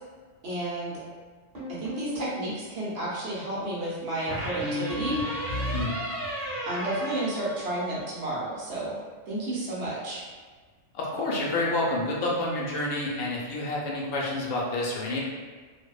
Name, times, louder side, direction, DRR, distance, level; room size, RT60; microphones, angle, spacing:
voice 1, 0.4-1.0 1.8-5.5 6.7-9.0 9.3-10.3, right 1 dB, 60° right, -7 dB, 1.0 m, -31 dB
sound 1, 1.5-2.4 4.3-8.0, equal, 45° right, 1.1 m, -33 dB
voice 2, 10.9-15.2, left 2 dB, 90° left, -4 dB, 1.0 m, -29 dB
2.7 x 2.0 x 2.3 m, 1.5 s
omnidirectional pair, 1.3 m